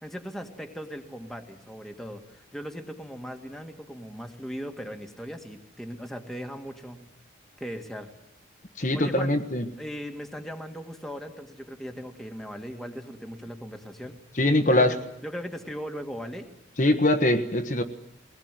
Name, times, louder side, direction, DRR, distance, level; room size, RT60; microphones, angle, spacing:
voice 1, 0.0-7.0 7.6-8.1 8.9-9.3 9.8-14.2 14.6-16.5, equal, ahead, 3 dB, 2.1 m, -38 dB
voice 2, 8.8-9.6 14.3-14.9 16.8-17.8, left 1 dB, 40° left, 6 dB, 1.4 m, -22 dB
23.0 x 19.5 x 9.3 m, 0.89 s
head